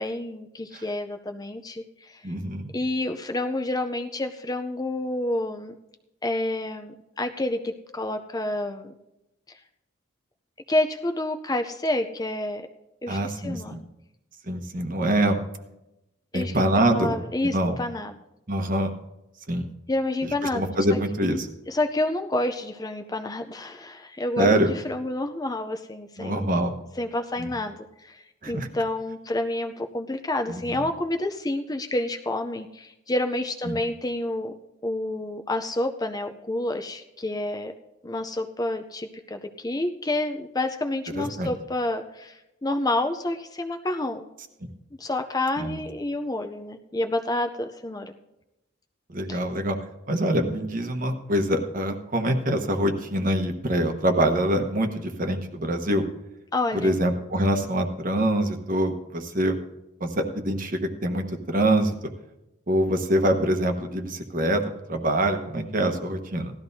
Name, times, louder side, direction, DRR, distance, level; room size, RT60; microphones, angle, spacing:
voice 1, 0.0-2.2 2.7-5.7 6.2-8.9 10.7-12.6 13.0-13.8 16.3-16.6 16.9-18.2 19.9-21.0 21.7-26.5 27.0-34.5 34.8-37.7 38.0-44.3 45.0-48.1 49.3-49.4 56.5-56.9, left 1 dB, 20° left, 7 dB, 0.5 m, -29 dB
voice 2, 2.2-2.6 13.1-13.8 14.5-15.4 16.3-17.2 17.4-17.8 18.5-18.9 19.5-19.6 20.5-21.5 24.4-24.7 26.2-26.8 27.4-27.5 28.4-28.7 30.5-30.8 33.7-33.8 41.2-41.5 45.6-45.8 49.1-49.8 50.1-56.0 56.7-59.6 60.0-61.9 62.7-64.6 64.9-66.5, right 1 dB, 40° right, 5 dB, 1.1 m, -24 dB
17.5 x 13.0 x 2.7 m, 0.92 s
head